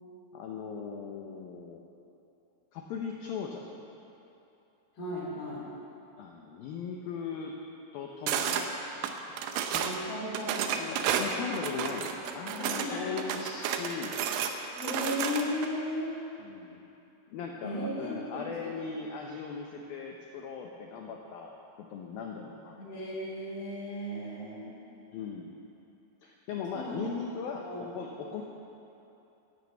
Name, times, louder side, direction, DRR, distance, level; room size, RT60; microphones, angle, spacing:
voice 1, 0.3-1.8 2.7-3.8 6.2-7.6 7.9-9.4 10.9-14.3 16.4-16.9 17.3-21.6 21.9-22.8 25.1-25.6 26.2-27.7 27.9-28.4, left 6 dB, 85° left, 1 dB, 2.1 m, -39 dB
voice 2, 4.9-5.7 9.7-11.2 12.6-13.2 13.8-14.0 14.8-16.2 17.6-18.7 22.8-24.7 26.5-27.0 27.6-27.9, left 1 dB, 55° left, -6 dB, 5.5 m, -36 dB
sound 1, 8.3-8.7 9.0-10.0 10.3-12.9 13.2-15.7, right 8 dB, 80° right, 3.1 m, -31 dB
13.0 x 10.5 x 8.1 m, 2.9 s
omnidirectional pair, 5.4 m